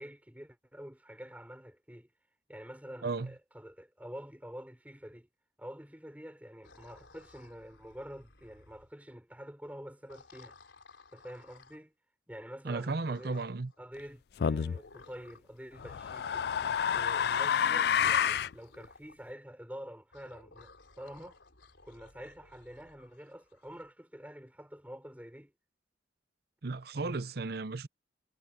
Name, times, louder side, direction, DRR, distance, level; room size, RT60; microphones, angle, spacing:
voice 1, 0.0-2.1 2.5-5.3 5.6-10.6 11.1-11.9 12.3-13.5 13.8-16.5 16.9-21.4 21.8-25.5, equal, 10° right, 5.5 m, -47 dB
sound 1, 6.6-8.9 10.0-11.8 13.1-13.8 14.7-15.6 16.4-17.5 18.2-19.2 20.1-23.9, left 3 dB, 85° left, 3.8 m, -58 dB
voice 2, 12.6-13.7 26.6-27.9, right 3 dB, 55° right, 0.7 m, -34 dB
sound 2, 14.4-14.8 15.8-18.5, left 8 dB, 60° left, 0.3 m, -29 dB
head